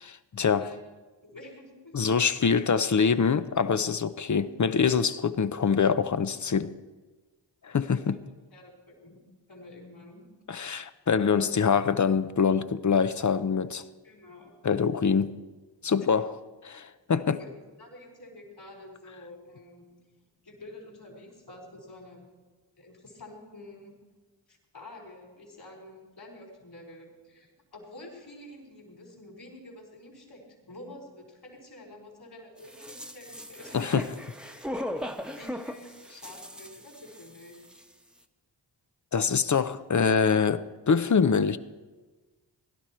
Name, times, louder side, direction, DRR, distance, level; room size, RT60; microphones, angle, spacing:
voice 1, 0.3-0.7 1.9-6.7 7.6-8.1 10.5-13.8 14.6-15.4 15.8-16.3 16.6-17.4 33.7-34.1 39.1-41.6, left 6 dB, 40° left, 0.7 m, -24 dB
voice 2, 1.2-1.9 7.9-8.2 8.5-9.2 9.5-10.3 14.0-14.5 16.0-16.1 17.4-17.5 17.8-19.9 20.2-22.3 22.8-23.9 24.5-33.8 35.3-37.6, left 1 dB, 55° left, 4.6 m, -48 dB
sound 1, 32.6-37.5 37.7-37.8, equal, ahead, 1.1 m, -38 dB
17.0 x 11.5 x 4.5 m
cardioid pair, 40°, 45 cm